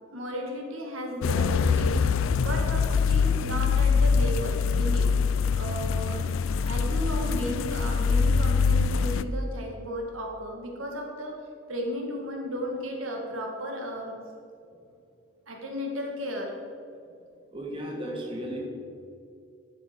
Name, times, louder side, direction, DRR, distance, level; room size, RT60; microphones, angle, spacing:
voice 1, 0.1-2.0 2.4-5.1 5.6-6.2 6.6-11.4 11.7-14.1 15.5-16.5, equal, 90° right, 1 dB, 1.8 m, -34 dB
sound 1, 1.2-9.2, left 5 dB, 85° left, 0.4 m, -24 dB
voice 2, 17.5-18.7, equal, 25° right, -1 dB, 1.4 m, -34 dB
11.0 x 6.6 x 5.1 m, 2.4 s
head